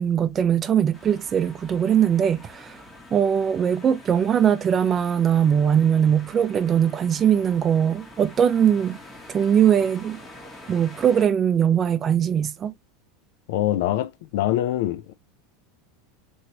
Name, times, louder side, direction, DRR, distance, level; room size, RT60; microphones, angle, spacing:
voice 1, 0.0-2.8 3.1-9.0 9.3-10.2 10.7-12.7, right 8 dB, 30° right, 0.4 m, -21 dB
sound 1, 0.9-11.3, left 1 dB, 15° left, 1.3 m, -45 dB
voice 2, 13.5-15.1, left 13 dB, 70° left, 0.4 m, -24 dB
3.1 x 2.9 x 2.8 m
supercardioid pair, 110°, 0 cm